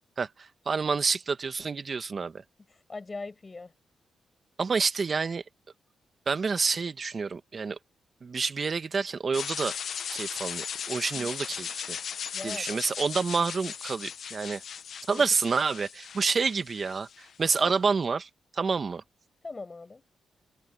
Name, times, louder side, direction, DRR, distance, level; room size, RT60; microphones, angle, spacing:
voice 1, 0.2-2.4 4.6-5.4 6.3-7.8 8.2-9.8 10.1-12.0 12.4-14.6 15.1-19.0, right 5 dB, 45° right, 1.6 m, -28 dB
voice 2, 2.7-3.7 11.1-11.3 12.3-12.8 15.1-15.2 17.6-17.7 19.4-20.0, left 3 dB, 30° left, 8.0 m, -40 dB
sound 1, 9.3-17.4, left 7 dB, 70° left, 0.9 m, -37 dB
cardioid pair, 80°, 0 cm